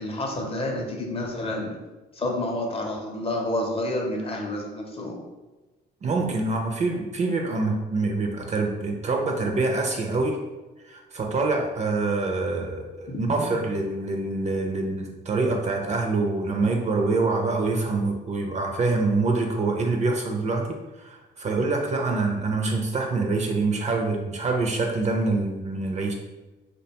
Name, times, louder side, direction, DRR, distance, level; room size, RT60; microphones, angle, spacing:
voice 1, 0.0-1.8 2.1-5.2 13.1-13.5, left 1 dB, 30° left, 1 dB, 0.5 m, -29 dB
voice 2, 6.0-10.4 10.8-26.1, right 3 dB, 35° right, 2 dB, 0.4 m, -25 dB
2.5 x 2.1 x 2.8 m, 1.1 s
cardioid pair, 90°, 20 cm